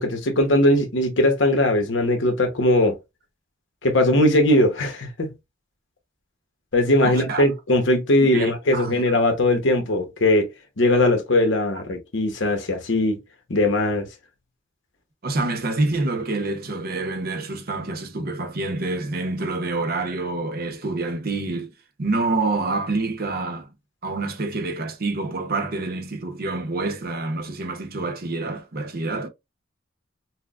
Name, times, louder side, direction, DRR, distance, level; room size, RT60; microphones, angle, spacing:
voice 1, 0.0-3.0 3.8-5.3 6.7-10.5 10.8-13.2 13.5-14.1, left 1 dB, 75° left, 1.0 m, -20 dB
voice 2, 7.0-7.4 8.3-9.0 15.2-21.7 22.0-23.7 24.0-29.3, right 2 dB, 55° right, 0.8 m, -27 dB
5.8 x 2.1 x 2.4 m
head